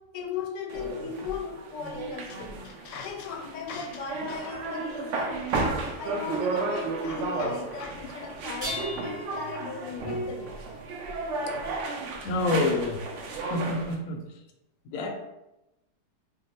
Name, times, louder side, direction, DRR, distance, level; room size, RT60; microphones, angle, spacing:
voice 1, 0.1-5.4 6.0-10.5, left 6 dB, 85° left, 3 dB, 1.2 m, -37 dB
sound 1, 0.7-13.9, right 3 dB, 75° right, 0.7 m, -33 dB
sound 2, 8.5-11.7 13.3-13.4 14.2-14.3, left 1 dB, 35° right, 1.1 m, -41 dB
voice 2, 12.2-13.0 13.5-14.2 14.8-15.1, left 2 dB, 70° left, 2 dB, 0.9 m, -27 dB
2.8 x 2.0 x 4.0 m, 0.93 s
omnidirectional pair, 1.8 m